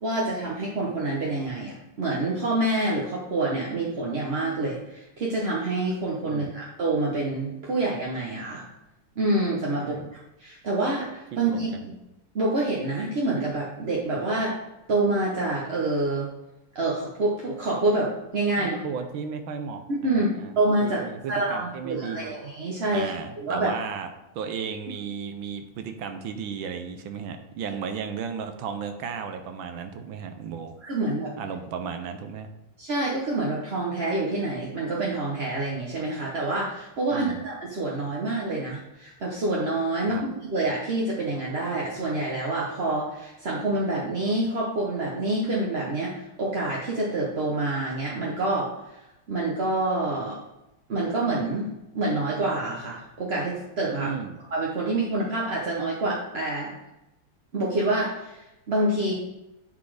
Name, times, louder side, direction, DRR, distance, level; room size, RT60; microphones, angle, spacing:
voice 1, 0.0-8.6 9.2-11.7 12.3-14.6 14.9-16.3 16.7-18.8 19.9-20.3 20.5-21.0 21.3-23.1 23.4-23.7 30.8-31.3 32.8-49.0 49.3-50.4 50.9-51.7 51.9-54.1 54.5-56.7 57.5-59.1, right 2 dB, 40° right, -4 dB, 1.0 m, -27 dB
voice 2, 9.7-10.1 11.3-11.9 18.6-20.5 20.8-22.4 22.9-30.7 31.4-32.5 37.1-37.4 40.1-40.2 54.0-54.4, right 6 dB, 75° right, 7 dB, 1.5 m, -34 dB
9.5 x 4.1 x 4.9 m, 0.95 s
omnidirectional pair, 2.2 m